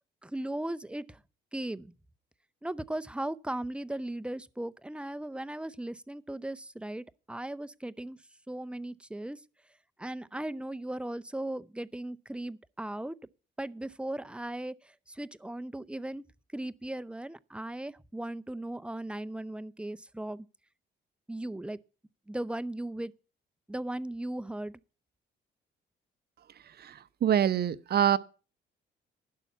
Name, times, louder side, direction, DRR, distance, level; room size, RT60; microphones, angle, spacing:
voice 1, 0.2-1.2 1.5-1.9 2.6-8.2 8.5-9.4 10.0-13.2 13.6-14.7 15.1-16.2 16.5-20.5 21.3-21.8 22.3-23.1 23.7-24.8, right 1 dB, 5° right, 0.6 m, -37 dB
voice 2, 27.2-28.2, right 9 dB, 55° right, 0.8 m, -24 dB
11.5 x 5.7 x 8.3 m
cardioid pair, 90°, 20 cm